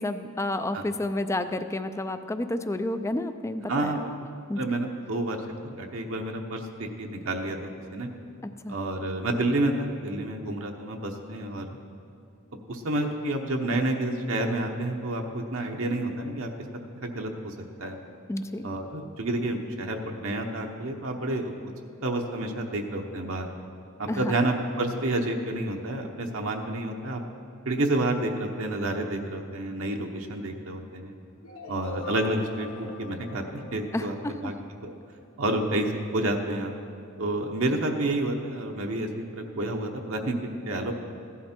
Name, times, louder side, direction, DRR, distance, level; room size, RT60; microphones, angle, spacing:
voice 1, 0.0-4.2 4.5-4.6 8.6-8.8 18.3-18.7 24.1-24.4 33.9-34.5, left 1 dB, 15° left, 10 dB, 0.4 m, -30 dB
voice 2, 3.7-4.0 4.6-5.4 5.7-8.1 8.7-11.7 12.7-16.5 17.0-18.0 18.6-21.5 22.0-23.5 24.0-27.2 27.6-31.1 31.7-34.5 34.8-34.9 35.4-36.7 37.2-40.9, right 1 dB, 65° right, 2 dB, 1.0 m, -29 dB
sound 1, 31.4-35.3, left 3 dB, 75° left, 1.2 m, -43 dB
15.5 x 11.0 x 4.4 m, 2.3 s
head